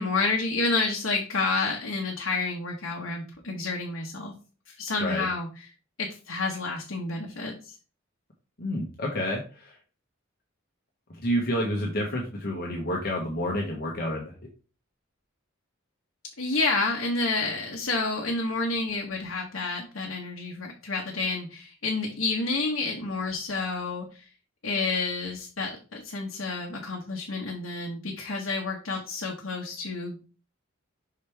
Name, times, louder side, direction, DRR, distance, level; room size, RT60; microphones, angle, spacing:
voice 1, 0.0-4.4 4.7-5.5 6.0-7.8 16.4-24.3 24.6-30.2, left 3 dB, 75° left, 0 dB, 1.1 m, -29 dB
voice 2, 8.6-9.8 11.1-14.4, equal, 50° left, -1 dB, 1.2 m, -29 dB
5.8 x 5.2 x 3.4 m, 0.35 s
head